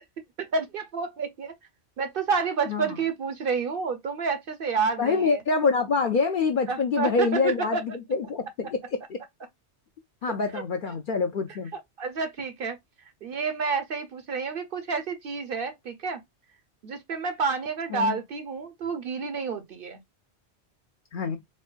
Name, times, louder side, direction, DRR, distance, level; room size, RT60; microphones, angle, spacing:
voice 1, 0.4-1.5 2.0-5.4 6.7-7.4 7.7-7.8 10.5-10.6 12.0-12.8 13.2-16.2 16.8-20.0, right 5 dB, 55° right, 0.8 m, -29 dB
voice 2, 2.7-3.0 5.0-8.8 9.1-9.2 10.2-11.7 17.9-18.2 21.1-21.4, left 4 dB, 55° left, 0.6 m, -26 dB
4.4 x 2.2 x 2.4 m
omnidirectional pair, 1.2 m